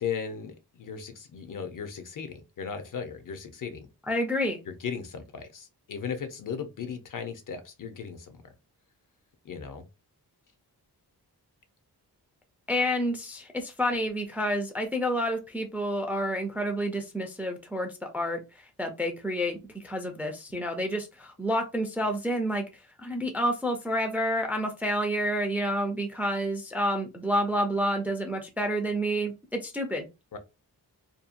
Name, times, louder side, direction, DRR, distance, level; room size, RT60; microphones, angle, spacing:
voice 1, 0.0-3.9 4.7-8.5 9.4-9.8 30.3-30.4, left 6 dB, 55° left, 8 dB, 0.5 m, -37 dB
voice 2, 4.1-4.6 12.7-18.4 18.8-22.6 23.0-30.1, equal, 5° right, 4 dB, 0.3 m, -29 dB
2.7 x 2.1 x 2.4 m, 0.26 s
wide cardioid pair, 155°, 38 cm